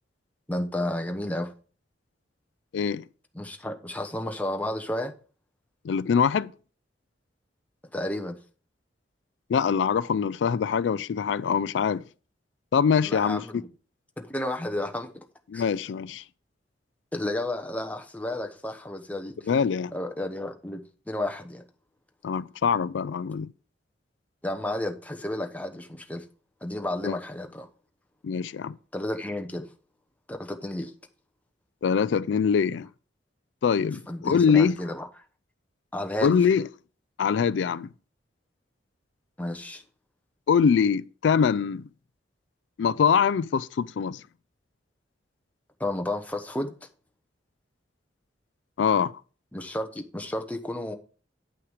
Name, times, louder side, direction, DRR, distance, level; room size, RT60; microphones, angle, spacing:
voice 1, 0.5-1.5 3.3-5.1 7.9-8.4 13.0-13.7 14.2-15.2 15.5-15.7 17.1-19.5 19.9-21.6 24.4-26.2 26.6-27.7 28.9-29.7 30.3-30.9 34.1-35.2 35.9-36.4 39.4-39.8 45.8-46.7 49.5-50.9, left 1 dB, 10° left, 1.0 m, -32 dB
voice 2, 2.7-3.0 5.8-6.5 9.5-12.0 12.7-13.4 15.5-16.2 19.5-19.9 22.2-23.5 27.0-27.2 28.2-28.8 31.8-32.9 33.6-34.8 36.2-36.6 37.2-37.9 40.5-41.9 42.8-44.2 48.8-49.1, left 6 dB, 80° left, 0.4 m, -23 dB
9.4 x 5.8 x 4.9 m
head